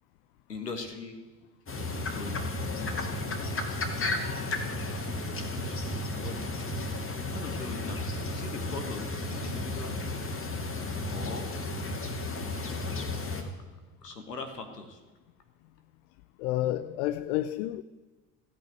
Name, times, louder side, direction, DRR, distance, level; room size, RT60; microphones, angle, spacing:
voice 1, 0.5-1.2 2.0-2.4 2.7-3.0 4.5-4.6 5.6-6.4 7.3-8.0 8.3-10.0 11.1-11.5 14.0-15.0, left 3 dB, 90° left, 1.5 m, -40 dB
sound 1, 1.7-13.4, left 2 dB, 25° left, 2.3 m, -33 dB
voice 2, 16.4-17.8, left 14 dB, 55° left, 0.6 m, -30 dB
14.5 x 6.0 x 9.1 m
figure-of-eight pair, 65°, 47 cm